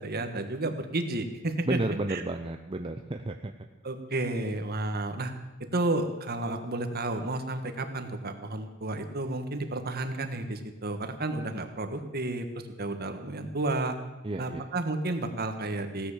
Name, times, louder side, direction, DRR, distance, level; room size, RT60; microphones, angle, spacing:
voice 1, 0.0-1.8 2.1-2.2 3.8-5.3 5.7-14.0 14.4-16.1, right 2 dB, 50° right, 7 dB, 1.6 m, -32 dB
voice 2, 1.7-3.5 14.2-14.6, right 2 dB, 25° right, 5 dB, 0.7 m, -32 dB
16.5 x 10.0 x 7.4 m, 1.1 s
head